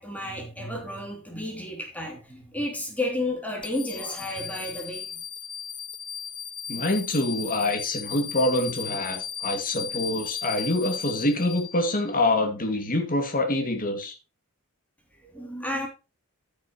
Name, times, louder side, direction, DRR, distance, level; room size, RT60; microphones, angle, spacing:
voice 1, 0.0-5.2 15.2-15.9, left 1 dB, 5° left, 2.9 m, -32 dB
sound 1, 3.6-12.1, left 8 dB, 20° left, 0.7 m, -36 dB
voice 2, 6.7-14.1, left 1 dB, 40° left, 2.3 m, -26 dB
14.5 x 6.5 x 3.1 m
head